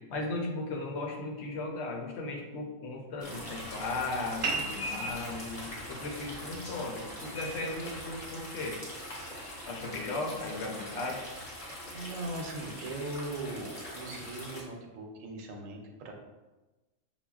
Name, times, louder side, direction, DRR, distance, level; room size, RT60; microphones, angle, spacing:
voice 1, 0.0-5.6 5.9-8.8 9.7-11.3, left 2 dB, 65° left, 0 dB, 0.8 m, -36 dB
sound 1, 3.2-14.6, left 1 dB, 30° left, 0.7 m, -42 dB
sound 2, 4.4-9.5, right 4 dB, 55° right, 0.6 m, -40 dB
voice 2, 11.6-16.1, right 2 dB, 90° right, 2 dB, 1.0 m, -40 dB
5.6 x 2.2 x 2.3 m, 1.1 s
omnidirectional pair, 1.3 m